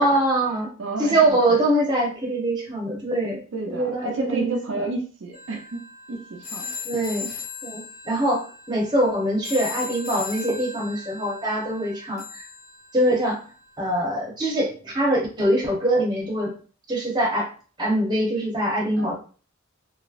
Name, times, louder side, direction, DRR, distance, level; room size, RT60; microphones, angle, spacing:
voice 1, 0.0-0.7 1.0-3.4 3.7-4.9 6.8-7.3 7.6-12.4 12.9-13.4 13.8-16.5 16.9-17.5 17.8-19.1, right 1 dB, 20° right, -3 dB, 1.0 m, -23 dB
voice 2, 0.8-1.6 3.5-6.7 19.0-19.1, right 3 dB, 70° right, 1 dB, 0.5 m, -31 dB
sound 1, 5.3-13.4, left 4 dB, 85° left, 1.1 m, -38 dB
3.1 x 2.7 x 2.4 m, 0.38 s
head